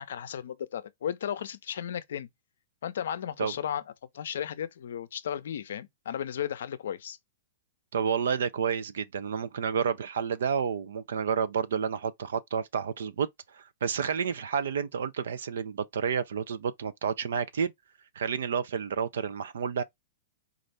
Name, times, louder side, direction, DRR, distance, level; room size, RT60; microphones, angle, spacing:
voice 1, 0.0-2.3 2.8-3.8 4.1-7.2, left 9 dB, 75° left, 0.5 m, -34 dB
voice 2, 7.9-13.3 13.5-17.7 18.2-19.8, right 7 dB, 75° right, 0.4 m, -30 dB
4.1 x 2.4 x 3.2 m
hypercardioid pair, 120°, 0 cm